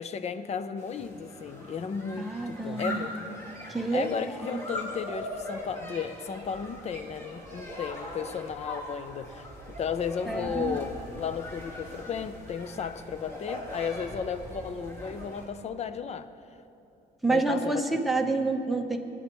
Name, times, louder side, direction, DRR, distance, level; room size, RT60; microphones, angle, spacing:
voice 1, 0.0-3.4 3.9-16.3 17.3-17.9, left 6 dB, 40° left, 0.6 m, -34 dB
sound 1, 0.8-15.5, left 1 dB, 15° left, 2.9 m, -41 dB
voice 2, 2.2-3.1 3.7-4.6 10.3-10.8 17.2-19.0, right 3 dB, ahead, 1.0 m, -28 dB
21.0 x 9.7 x 3.1 m
cardioid pair, 110°, 17 cm